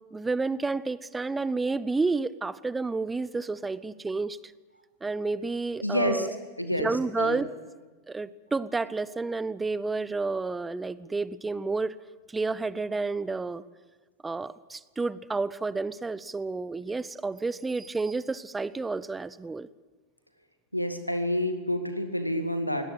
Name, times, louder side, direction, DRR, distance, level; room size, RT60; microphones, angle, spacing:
voice 1, 0.0-4.4 5.0-6.3 6.7-7.5 8.1-11.9 12.3-13.6 14.2-19.7, right 3 dB, 10° right, 19 dB, 0.6 m, -30 dB
voice 2, 5.8-6.3 6.6-7.4 20.7-22.9, equal, 90° left, 7 dB, 2.1 m, -28 dB
23.0 x 17.5 x 8.0 m, 1.3 s
figure-of-eight pair, 90°, 0 cm